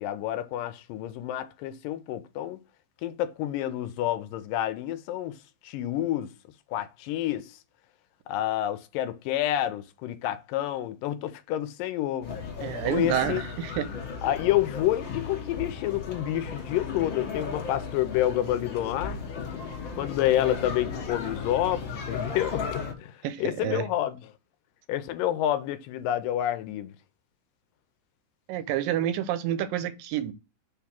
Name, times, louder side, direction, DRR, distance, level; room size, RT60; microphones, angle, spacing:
voice 1, 0.0-2.6 3.0-5.4 5.6-6.3 6.7-7.6 8.3-12.4 12.8-13.4 14.2-19.2 20.0-24.2 24.9-26.9, left 13 dB, 80° left, 2.2 m, -29 dB
sound 1, 12.2-22.9, left 5 dB, 60° left, 1.2 m, -35 dB
voice 2, 12.6-13.9 23.2-23.8 28.5-30.3, right 11 dB, 80° right, 2.3 m, -29 dB
5.2 x 3.6 x 5.7 m
omnidirectional pair, 4.1 m